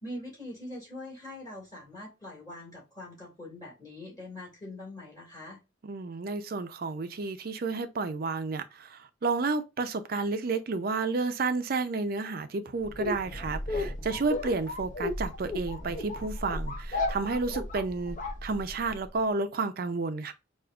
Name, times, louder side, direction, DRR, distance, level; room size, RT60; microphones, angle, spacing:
voice 1, 0.0-5.6 14.4-14.5, left 1 dB, 20° left, 1.9 m, -43 dB
voice 2, 5.8-20.3, right 3 dB, 50° right, 0.5 m, -31 dB
sound 1, 12.8-19.1, left 2 dB, 40° left, 0.6 m, -35 dB
4.9 x 2.4 x 2.3 m
head